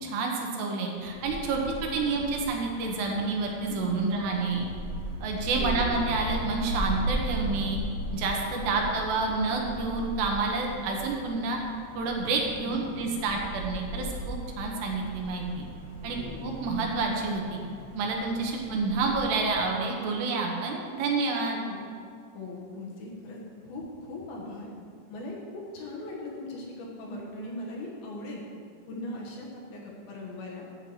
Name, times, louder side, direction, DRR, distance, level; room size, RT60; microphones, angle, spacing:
voice 1, 0.0-1.6 1.9-4.7 5.2-7.8 8.1-11.6 12.0-15.6 16.0-17.6 18.0-21.6, right 3 dB, 75° right, 1 dB, 3.1 m, -29 dB
Wind, 1.0-19.5, right 1 dB, 85° left, 0.8 m, -37 dB
voice 2, 1.3-1.7 2.1-2.2 3.7-4.1 5.4-6.0 8.5-8.9 12.6-13.1 16.0-16.5 21.4-21.8 22.3-23.4 23.6-24.7 25.1-28.4 28.9-30.7, left 2 dB, 70° left, -3 dB, 2.8 m, -40 dB
10.5 x 4.5 x 7.7 m, 2.2 s
omnidirectional pair, 5.0 m